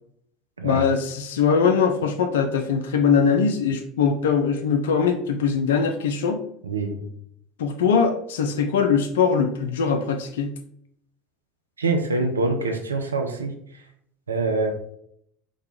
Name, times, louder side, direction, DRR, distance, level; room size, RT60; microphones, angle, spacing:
voice 1, 0.6-6.4 7.6-10.5, left 6 dB, 70° left, 6 dB, 0.3 m, -21 dB
voice 2, 6.6-7.0 11.8-13.5 14.3-14.7, right 3 dB, 85° right, 4 dB, 0.4 m, -24 dB
3.7 x 2.2 x 2.9 m, 0.69 s
figure-of-eight pair, 75°, 0 cm